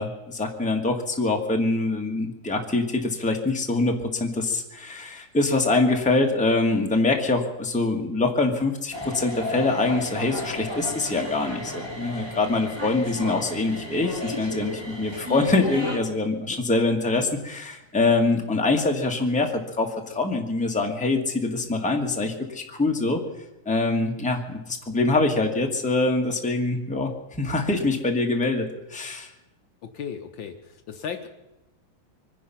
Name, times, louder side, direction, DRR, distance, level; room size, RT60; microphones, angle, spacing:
voice 1, 0.0-23.2 23.6-27.1 27.4-29.3, left 2 dB, 5° left, 2 dB, 1.4 m, -24 dB
sound 1, 8.9-16.0, left 1 dB, 10° right, 1.9 m, -33 dB
voice 2, 29.8-31.3, left 7 dB, 65° left, 7 dB, 1.6 m, -36 dB
24.5 x 10.0 x 5.8 m, 0.97 s
omnidirectional pair, 2.4 m